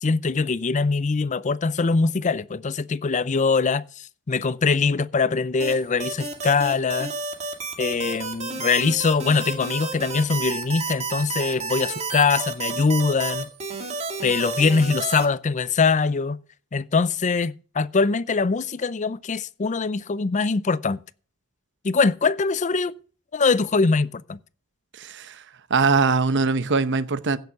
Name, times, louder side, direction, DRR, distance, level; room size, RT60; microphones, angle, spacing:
voice 1, 0.0-7.1 7.8-13.5 14.2-16.4 16.7-21.0 21.8-22.9 23.3-24.4, left 4 dB, 35° left, 0.5 m, -22 dB
sound 1, 5.6-15.2, right 4 dB, 30° right, 2.2 m, -31 dB
voice 2, 25.0-25.3 25.7-27.4, right 4 dB, 55° right, 0.9 m, -21 dB
16.0 x 6.9 x 5.9 m
head